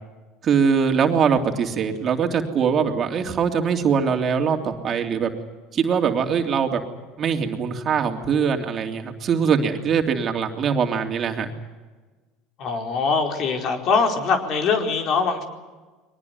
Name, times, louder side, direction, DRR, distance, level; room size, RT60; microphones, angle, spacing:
voice 1, 0.4-5.3 5.7-6.8 7.2-11.5, right 6 dB, 40° right, 4 dB, 3.0 m, -22 dB
voice 2, 12.6-15.4, left 5 dB, 55° left, 4 dB, 4.5 m, -22 dB
22.5 x 19.5 x 9.6 m, 1.3 s
supercardioid pair, 95°, 0 cm